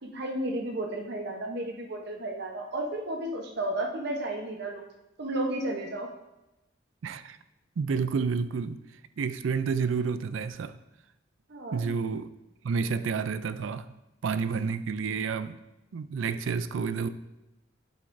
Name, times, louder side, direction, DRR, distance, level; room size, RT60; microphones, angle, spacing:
voice 1, 0.0-4.8 5.2-6.1 11.5-11.8, right 1 dB, 60° right, 2 dB, 0.8 m, -33 dB
voice 2, 7.0-7.4 7.8-8.8 9.2-10.8 11.7-12.3 12.6-13.9 14.2-15.6 15.9-17.1, right 5 dB, 90° right, 12 dB, 0.4 m, -30 dB
7.9 x 6.9 x 2.6 m, 0.96 s
head